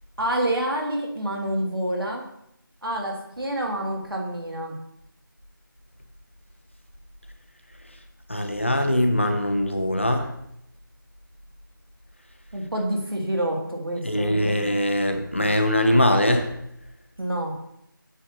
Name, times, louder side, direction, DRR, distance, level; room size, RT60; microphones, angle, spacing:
voice 1, 0.2-2.3 2.8-4.7 12.5-14.6 17.2-17.5, right 1 dB, 85° right, 0 dB, 2.0 m, -28 dB
voice 2, 8.3-10.3 14.0-16.5, left 1 dB, 35° left, 6 dB, 0.6 m, -22 dB
8.8 x 6.8 x 2.7 m, 0.76 s
figure-of-eight pair, 180°, 12 cm